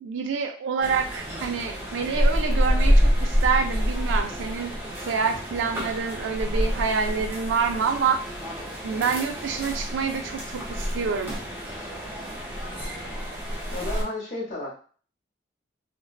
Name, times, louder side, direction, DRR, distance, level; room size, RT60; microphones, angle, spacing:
voice 1, 0.0-4.7 5.0-8.2 8.8-11.3, right 5 dB, 80° right, 5 dB, 0.4 m, -27 dB
sound 1, 0.8-14.0, equal, 10° right, 0.5 m, -27 dB
voice 2, 13.7-14.7, left 2 dB, 40° left, -6 dB, 0.7 m, -32 dB
2.5 x 2.2 x 2.3 m, 0.42 s
head